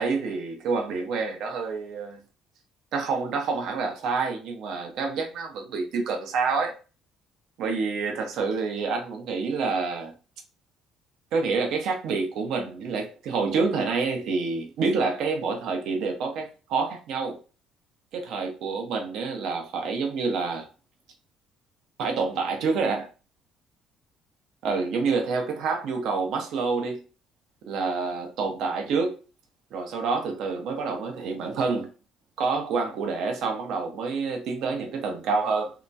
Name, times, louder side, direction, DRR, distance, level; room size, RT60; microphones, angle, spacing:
voice 1, 0.0-2.2 2.9-6.7 7.6-10.1 11.3-17.4 18.1-20.7 22.0-23.1 24.6-27.0 27.7-29.2 29.7-31.9 32.4-35.7, right 4 dB, 75° right, 0.8 m, -27 dB
2.8 x 2.2 x 2.6 m
cardioid pair, 90°, 0 cm